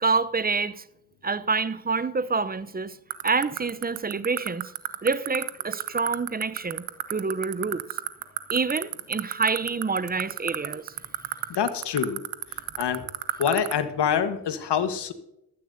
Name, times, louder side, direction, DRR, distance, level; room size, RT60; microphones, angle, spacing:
voice 1, 0.0-0.8 1.2-3.0 3.2-4.7 5.0-7.8 8.5-10.9, right 4 dB, 20° right, 0.6 m, -27 dB
sound 1, 3.1-13.7, right 17 dB, 85° right, 0.8 m, -28 dB
voice 2, 11.5-12.2 12.8-13.0 13.4-15.1, left 8 dB, 60° left, 1.4 m, -25 dB
15.5 x 13.0 x 2.7 m
supercardioid pair, 50°, 46 cm